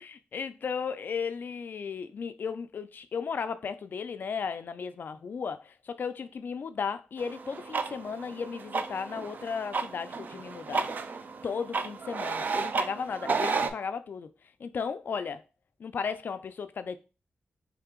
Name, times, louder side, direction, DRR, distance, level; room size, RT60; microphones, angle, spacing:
voice 1, 0.0-10.9 11.4-14.3 14.6-15.4 15.8-17.0, left 6 dB, 55° left, 0.3 m, -35 dB
sound 1, 7.2-13.7, right 4 dB, 45° right, 0.3 m, -33 dB
3.3 x 2.8 x 3.6 m
wide cardioid pair, 145°, 4 cm